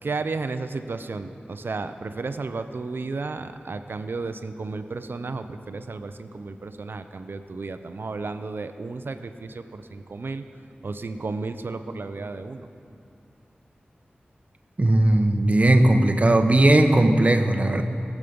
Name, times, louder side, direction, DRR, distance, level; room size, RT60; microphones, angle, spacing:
voice 1, 0.0-10.4 10.8-12.7, right 3 dB, 70° right, 9 dB, 0.6 m, -33 dB
voice 2, 14.8-17.8, right 1 dB, 40° right, 7 dB, 0.9 m, -18 dB
21.0 x 7.4 x 5.2 m, 2.6 s
wide cardioid pair, 65°, 4 cm